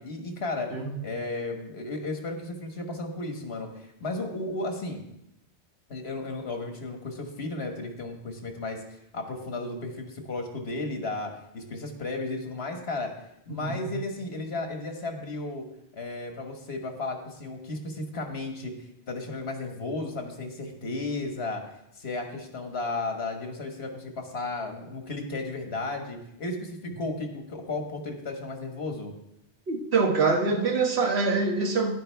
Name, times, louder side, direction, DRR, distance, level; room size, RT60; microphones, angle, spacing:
voice 1, 0.0-0.7 1.0-5.0 5.9-8.8 9.1-13.1 13.5-15.7 15.9-18.7 19.1-21.6 21.9-29.1, left 2 dB, 75° left, 4 dB, 1.6 m, -34 dB
voice 2, 13.5-13.9 29.7-32.0, right 4 dB, 75° right, 3 dB, 1.5 m, -25 dB
10.5 x 10.0 x 3.4 m, 0.82 s
omnidirectional pair, 1.1 m